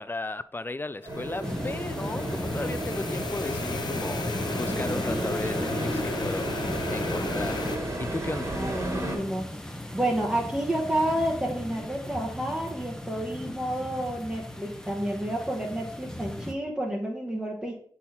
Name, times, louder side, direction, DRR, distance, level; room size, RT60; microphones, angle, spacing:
voice 1, 0.0-4.3 4.5-8.6, left 2 dB, 25° left, 0.4 m, -35 dB
sound 1, 1.0-7.8, left 4 dB, 70° left, 0.7 m, -35 dB
sound 2, 1.1-9.2, right 1 dB, 35° right, 2.1 m, -33 dB
sound 3, 1.4-16.5, left 1 dB, 10° left, 1.0 m, -37 dB
voice 2, 8.5-9.5 9.7-17.7, right 1 dB, 10° right, 1.2 m, -30 dB
7.2 x 4.0 x 4.2 m
cardioid pair, 45°, 8 cm